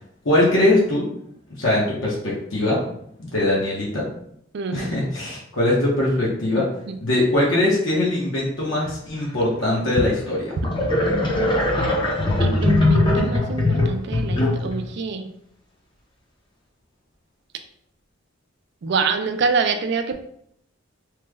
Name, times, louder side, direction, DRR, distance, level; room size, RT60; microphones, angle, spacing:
voice 1, 0.2-1.1 1.5-2.8 3.2-4.1 4.7-6.7 7.0-10.6, left 1 dB, 65° left, -5 dB, 0.9 m, -21 dB
voice 2, 4.5-4.9 6.9-7.0 12.4-15.3 18.8-20.1, right 4 dB, 55° right, 7 dB, 0.4 m, -25 dB
sound 1, 9.9-10.0 10.6-14.9, left 2 dB, 25° left, 0.6 m, -20 dB
3.1 x 2.0 x 3.4 m, 0.70 s
head